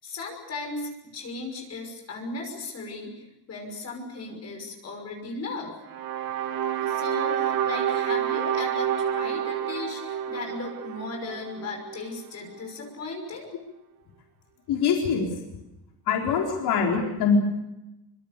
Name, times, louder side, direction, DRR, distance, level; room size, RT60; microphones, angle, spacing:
voice 1, 0.0-5.7 6.8-13.5, left 3 dB, 40° left, 2 dB, 6.0 m, -36 dB
sound 1, 5.8-12.1, right 10 dB, 65° right, 2.0 m, -29 dB
voice 2, 14.7-15.2 16.1-17.4, left 6 dB, 80° left, 0 dB, 4.3 m, -23 dB
26.5 x 25.5 x 6.8 m, 0.94 s
cardioid pair, 165°, 38 cm